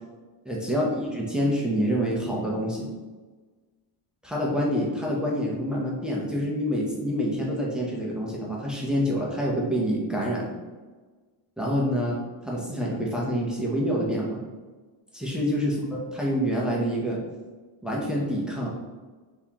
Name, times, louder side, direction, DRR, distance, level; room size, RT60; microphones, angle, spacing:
voice 1, 0.4-2.9 4.2-10.5 11.6-12.2 12.4-14.4 15.1-17.2 17.8-18.7, equal, ahead, -4 dB, 0.6 m, -27 dB
4.2 x 3.6 x 2.9 m, 1.3 s
cardioid pair, 155°, 48 cm